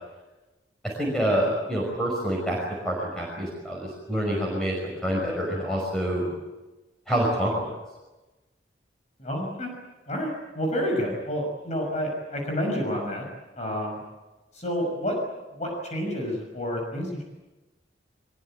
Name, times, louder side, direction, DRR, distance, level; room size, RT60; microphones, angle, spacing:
voice 1, 1.0-2.6 2.8-6.3 7.1-7.5, equal, 5° left, -3 dB, 5.8 m, -27 dB
voice 2, 9.2-9.7 10.1-13.3 13.6-14.0 14.5-15.2 15.5-17.2, equal, 40° left, 1 dB, 6.2 m, -29 dB
23.0 x 22.0 x 9.0 m, 1.1 s
head